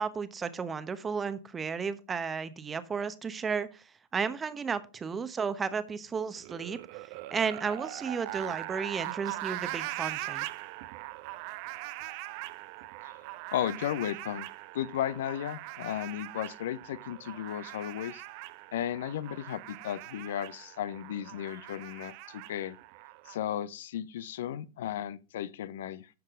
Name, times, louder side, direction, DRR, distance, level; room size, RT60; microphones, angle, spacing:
voice 1, 0.0-3.8 4.1-10.5, right 5 dB, 20° right, 1.0 m, -33 dB
sound 1, 6.4-23.4, right 18 dB, 45° right, 0.6 m, -41 dB
voice 2, 13.5-14.5 14.7-18.2 18.7-22.8 23.3-26.1, left 11 dB, 60° left, 0.6 m, -35 dB
12.0 x 7.3 x 3.7 m
figure-of-eight pair, 90°, 0 cm